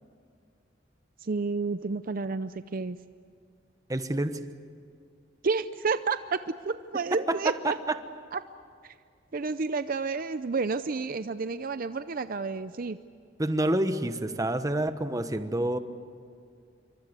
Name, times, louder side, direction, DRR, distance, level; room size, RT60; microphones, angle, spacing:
voice 1, 1.2-3.0 5.4-7.8 8.3-8.4 8.8-8.9 9.3-13.0, right 4 dB, 50° right, 12 dB, 0.6 m, -30 dB
voice 2, 3.9-4.4 7.1-7.9 13.4-15.8, right 1 dB, 20° right, 10 dB, 1.2 m, -28 dB
27.5 x 24.5 x 8.2 m, 2.3 s
head